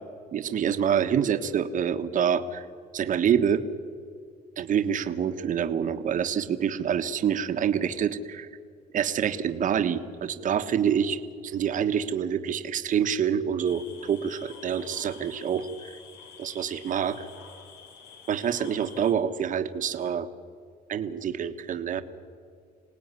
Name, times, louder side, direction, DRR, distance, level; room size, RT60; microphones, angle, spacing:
voice 1, 0.3-2.6 2.9-3.6 4.6-8.5 8.9-15.9 16.4-17.2 18.3-20.3 20.9-22.0, right 8 dB, 50° right, 8 dB, 1.4 m, -26 dB
sound 1, 13.6-19.1, left 6 dB, 90° left, 3.9 m, -48 dB
26.5 x 18.5 x 9.7 m, 2.2 s
cardioid pair, 110°, 17 cm